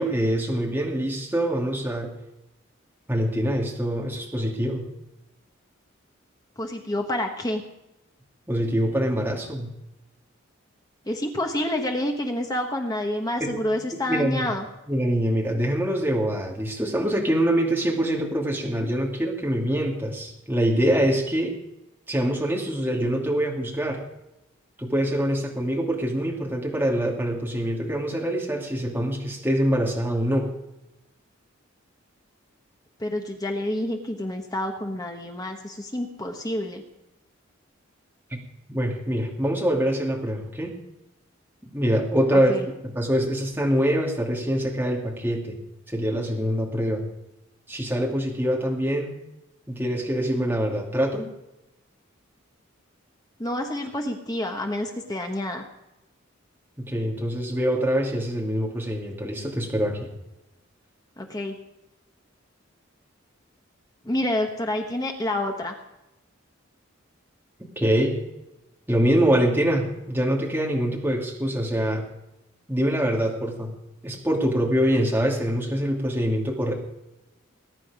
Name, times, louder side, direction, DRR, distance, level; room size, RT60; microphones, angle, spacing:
voice 1, 0.0-2.1 3.1-4.9 8.5-9.7 13.4-13.6 14.1-14.4 14.9-21.5 22.1-24.0 24.8-30.5 38.3-38.4 38.7-40.7 41.6-42.5 42.8-45.6 45.9-47.1 47.7-49.1 49.7-51.3 56.8-60.1 67.8-68.2 68.9-72.0 72.7-73.7 74.0-76.7, equal, 10° right, -2 dB, 2.6 m, -24 dB
voice 2, 6.6-7.6 11.1-14.7 33.0-36.8 42.3-42.7 53.4-55.6 61.2-61.6 64.0-65.7, left 1 dB, 20° left, 3 dB, 1.2 m, -28 dB
21.0 x 10.0 x 5.1 m, 0.92 s
head